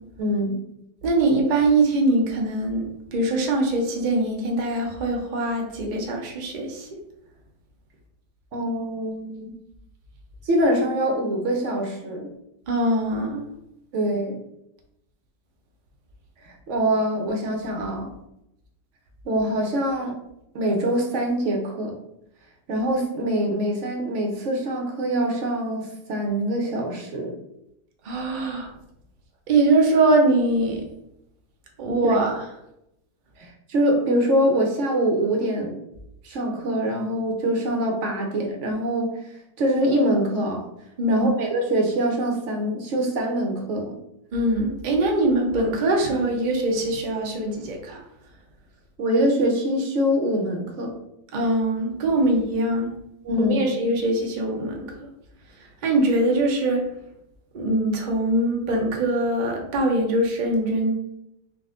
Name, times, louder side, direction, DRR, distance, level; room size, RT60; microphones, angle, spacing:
voice 1, 0.2-0.6 8.5-9.5 10.5-12.3 13.9-14.4 16.4-18.1 19.3-20.2 20.5-22.0 22.7-27.4 32.0-32.1 33.4-35.8 36.2-39.1 39.6-40.7 41.1-43.9 49.0-50.9 53.2-53.7, right 1 dB, 60° right, 1 dB, 0.8 m, -24 dB
voice 2, 1.0-2.8 3.1-6.9 12.7-13.4 28.0-28.7 29.5-30.8 31.8-32.4 41.0-41.3 44.3-48.0 51.3-52.9 53.4-54.9 55.8-56.8 57.5-60.9, right 2 dB, 75° right, 1 dB, 0.4 m, -22 dB
3.7 x 2.5 x 3.6 m, 0.81 s
omnidirectional pair, 1.8 m